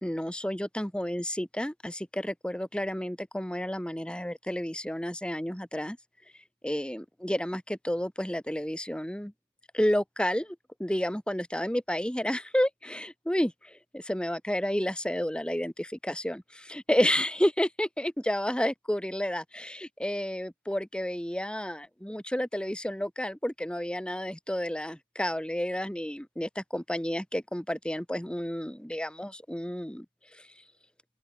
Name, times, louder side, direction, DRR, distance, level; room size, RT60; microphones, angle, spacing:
voice 1, 0.0-6.0 6.6-9.3 9.7-30.0 30.3-30.5, equal, 5° left, 1.3 m, -31 dB
open air
head